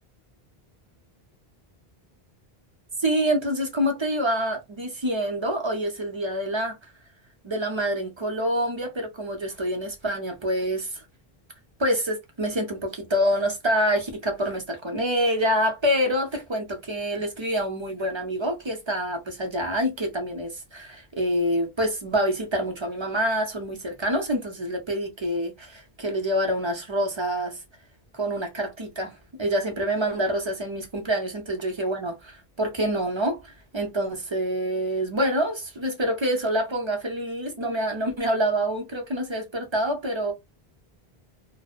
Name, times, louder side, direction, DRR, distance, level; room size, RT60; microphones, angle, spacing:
voice 1, 3.0-6.8 7.4-11.0 11.8-27.6 28.2-40.3, equal, 35° right, 0.6 m, -26 dB
2.6 x 2.0 x 2.4 m
omnidirectional pair, 1.0 m